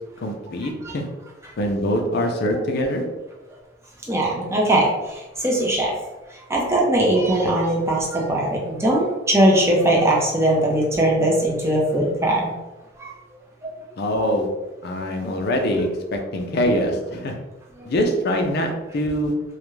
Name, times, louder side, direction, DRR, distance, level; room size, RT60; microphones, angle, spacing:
voice 1, 0.2-1.0 1.6-3.0 14.0-14.5 14.8-17.3 17.9-19.3, equal, 55° left, 3 dB, 0.4 m, -23 dB
voice 2, 4.1-5.9 6.5-12.5 13.0-13.1 13.6-13.7, right 1 dB, 15° right, -3 dB, 0.5 m, -20 dB
2.3 x 2.1 x 3.0 m, 1.1 s
head